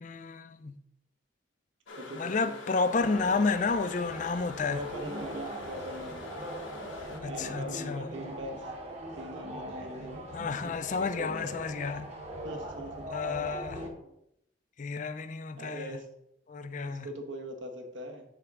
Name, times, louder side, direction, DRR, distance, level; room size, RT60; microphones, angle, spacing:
voice 1, 0.0-0.8 2.1-4.8 7.2-8.0 10.3-12.1 13.1-13.9 14.8-15.9 16.5-17.1, left 4 dB, 40° left, 0.4 m, -31 dB
sound 1, 1.9-7.2, left 3 dB, 75° left, 1.1 m, -44 dB
voice 2, 2.0-2.6 4.7-6.2 7.3-8.6 9.1-10.2 10.6-11.6 12.4-13.0 14.0-14.1 15.5-16.0 16.9-18.2, equal, 70° right, 1.1 m, -42 dB
sound 2, 2.9-13.9, right 1 dB, 35° right, 1.0 m, -41 dB
6.6 x 3.5 x 6.1 m
head